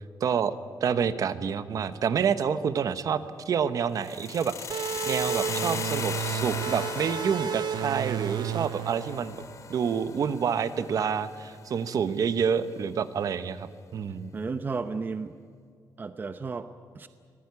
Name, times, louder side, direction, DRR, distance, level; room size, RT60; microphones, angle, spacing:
voice 1, 0.2-0.5 0.8-9.4 9.7-14.3, right 7 dB, 50° right, 13 dB, 1.1 m, -28 dB
sound 1, 3.9-12.0, left 7 dB, 45° left, 1.0 m, -38 dB
sound 2, 4.7-10.0, right 11 dB, 80° right, 0.6 m, -32 dB
voice 2, 14.3-15.3 16.0-17.1, right 4 dB, 25° right, 10 dB, 0.8 m, -33 dB
25.0 x 19.0 x 9.7 m, 2.2 s
wide cardioid pair, 160°, 7 cm